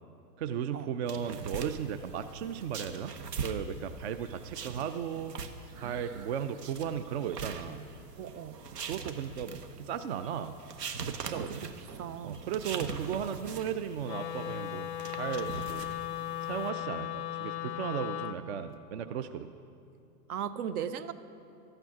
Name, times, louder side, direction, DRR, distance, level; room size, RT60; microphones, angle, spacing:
voice 1, 0.4-3.1 3.4-5.4 5.8-7.8 8.8-10.6 11.0-11.6 12.2-15.9 16.4-19.5, right 8 dB, 45° right, 10 dB, 0.4 m, -36 dB
sound 1, 1.1-16.7, right 5 dB, 85° right, 1.1 m, -42 dB
voice 2, 5.8-6.3 8.2-8.6 11.2-11.7 12.0-12.4 20.3-21.1, right 8 dB, 65° right, 12 dB, 0.8 m, -38 dB
Wind instrument woodwind instrument, 14.0-18.4, left 12 dB, 30° left, 0.4 m, -37 dB
14.0 x 8.9 x 6.0 m, 2.6 s
hypercardioid pair, 140°, 47 cm